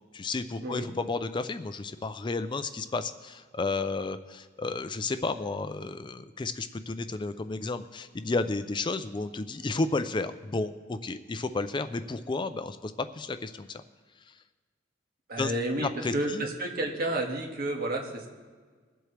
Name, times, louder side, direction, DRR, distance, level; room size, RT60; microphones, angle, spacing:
voice 1, 0.1-13.8 14.3-14.4 15.4-15.5 15.8-16.4, left 3 dB, 25° left, 10 dB, 0.4 m, -32 dB
voice 2, 15.3-18.3, right 1 dB, 50° right, 1 dB, 1.8 m, -31 dB
22.5 x 7.8 x 3.3 m, 1.5 s
head